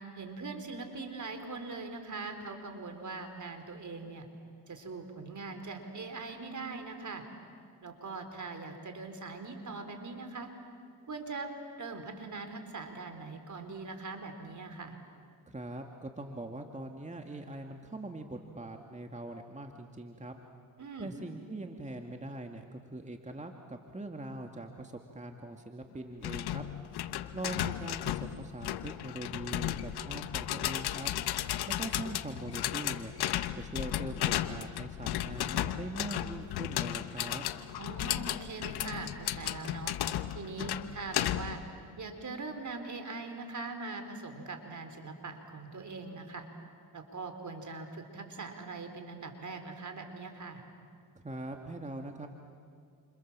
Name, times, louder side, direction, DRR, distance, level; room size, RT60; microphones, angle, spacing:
voice 1, 0.2-4.3 4.7-7.2 7.8-10.5 11.1-11.5 11.8-15.0 20.8-21.1 37.8-39.9 40.3-41.6 42.0-46.5 46.9-50.6, right 3 dB, 50° right, 6 dB, 4.3 m, -41 dB
voice 2, 15.5-20.3 21.0-26.6 27.3-31.1 31.7-33.1 33.6-37.5 51.2-52.3, right 2 dB, 20° right, 4 dB, 2.0 m, -42 dB
sound 1, 26.2-41.7, left 12 dB, 85° left, 1.1 m, -34 dB
29.0 x 27.5 x 7.5 m, 2.3 s
cardioid pair, 65°, 38 cm